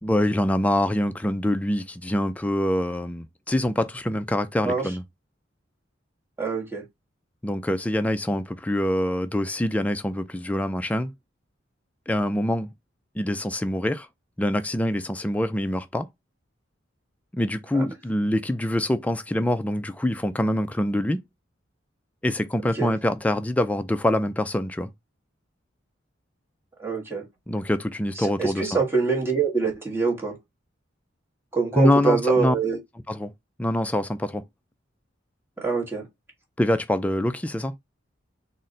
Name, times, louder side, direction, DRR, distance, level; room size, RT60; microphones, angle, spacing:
voice 1, 0.0-5.0 7.4-11.1 12.1-12.7 13.2-14.1 14.4-16.1 17.3-21.2 22.2-24.9 27.5-28.8 31.7-32.6 33.1-33.3 33.6-34.4 36.6-37.7, left 1 dB, 5° left, 0.3 m, -25 dB
voice 2, 6.4-6.8 17.7-17.8 22.7-22.9 26.8-27.3 28.2-30.4 31.5-32.8 35.6-36.1, right 4 dB, 10° right, 1.2 m, -25 dB
4.0 x 2.1 x 3.7 m
head